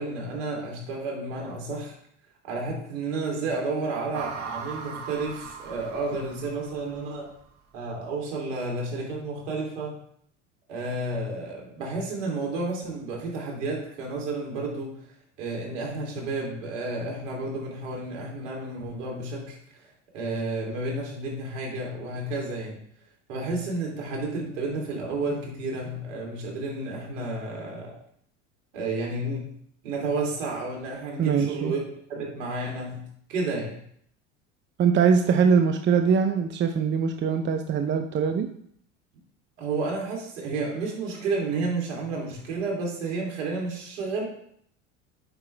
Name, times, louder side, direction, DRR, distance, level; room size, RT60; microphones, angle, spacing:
voice 1, 0.0-2.0 2.5-7.3 7.7-10.0 10.7-14.9 15.4-22.8 23.3-28.0 28.7-29.5 29.8-31.8 32.1-33.0 33.3-33.8 39.6-44.2, right 3 dB, 70° right, -1 dB, 3.0 m, -31 dB
sound 1, 4.1-7.4, right 5 dB, 50° right, 1.8 m, -40 dB
voice 2, 31.2-31.7 34.8-38.5, right 6 dB, 30° right, 7 dB, 0.7 m, -22 dB
8.9 x 5.7 x 3.3 m, 0.66 s
hypercardioid pair, 80°, 38 cm